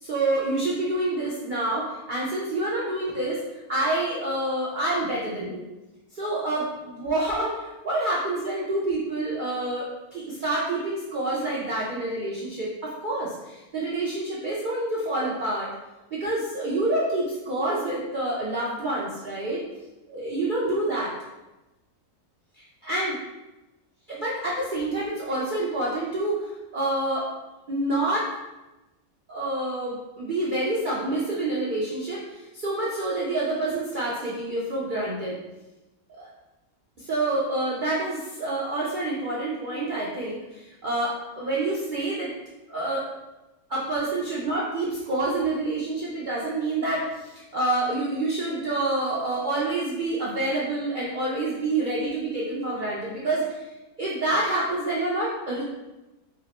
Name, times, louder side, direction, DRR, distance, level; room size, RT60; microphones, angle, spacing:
voice 1, 0.0-3.4 3.7-5.6 6.1-15.7 16.1-19.6 20.1-21.1 22.8-23.2 24.1-27.2 27.7-28.3 29.3-35.4 36.2-36.3 37.0-42.3 42.7-43.0 43.7-53.6 54.0-55.6, right 2 dB, 70° right, -6 dB, 0.4 m, -27 dB
3.1 x 2.8 x 2.9 m, 1.0 s
omnidirectional pair, 1.5 m